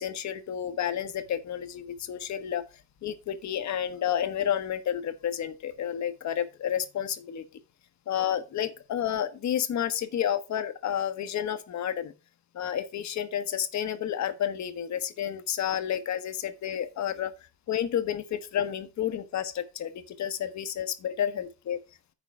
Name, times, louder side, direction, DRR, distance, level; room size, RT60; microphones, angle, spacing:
voice 1, 0.0-2.6 3.0-7.4 8.1-12.1 12.5-17.3 17.7-21.8, left 9 dB, 65° left, 1.3 m, -30 dB
9.8 x 4.1 x 6.0 m
cardioid pair, 90°, 30 cm